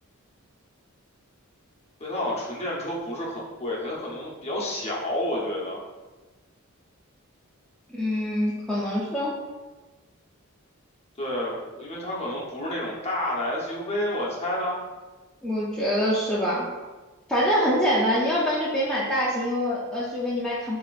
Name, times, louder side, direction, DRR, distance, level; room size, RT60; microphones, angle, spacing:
voice 1, 2.0-5.8 11.2-14.8, left 1 dB, 30° left, -4 dB, 0.9 m, -30 dB
voice 2, 7.9-9.3 15.4-16.7 17.3-20.8, equal, 5° left, -8 dB, 0.6 m, -25 dB
7.2 x 2.9 x 2.5 m, 1.2 s
head